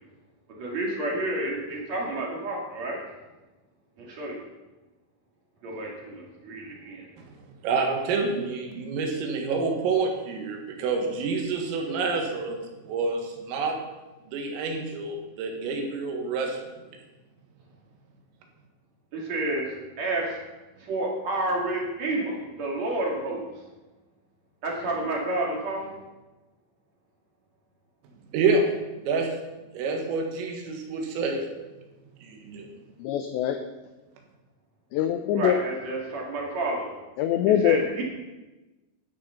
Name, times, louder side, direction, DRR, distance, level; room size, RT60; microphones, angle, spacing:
voice 1, 0.6-3.1 4.0-4.4 5.6-7.1 19.1-20.4 20.8-23.4 24.6-26.0 35.3-37.0 37.5-38.0, right 2 dB, 45° right, -2 dB, 2.4 m, -30 dB
voice 2, 7.6-12.6 12.9-13.8 14.3-16.6 28.3-28.7 29.0-29.3 29.7-31.4 32.2-32.7, right 4 dB, 80° right, 2 dB, 4.3 m, -27 dB
voice 3, 33.0-33.6 34.9-35.5 37.2-37.8, left 10 dB, 90° left, 7 dB, 2.5 m, -23 dB
12.5 x 9.9 x 5.6 m, 1.1 s
omnidirectional pair, 6.0 m